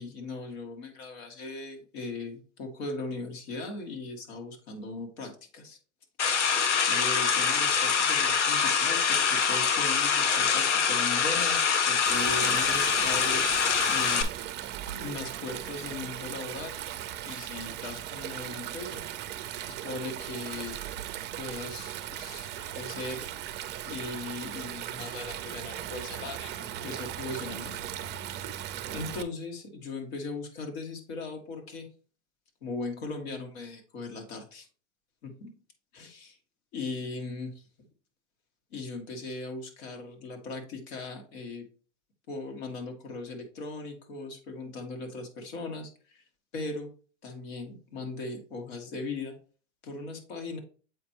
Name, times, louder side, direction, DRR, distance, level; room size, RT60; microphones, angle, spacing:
voice 1, 0.0-5.8 6.9-13.4 13.9-14.3 14.9-16.8 17.3-19.0 19.7-20.8 21.4-23.3 23.8-27.8 28.2-28.3 28.9-31.9 32.6-34.7 35.2-35.5 35.9-36.3 36.7-37.6 38.7-41.6 42.3-46.2 46.5-46.9 47.2-49.4 49.8-50.6, left 3 dB, 65° left, 2 dB, 2.1 m, -38 dB
sound 1, 6.2-14.2, left 6 dB, 85° left, 1.0 m, -25 dB
Stream, 12.1-29.2, right 12 dB, 30° right, 0.6 m, -38 dB
7.7 x 4.4 x 3.0 m, 0.39 s
hypercardioid pair, 110°, 35 cm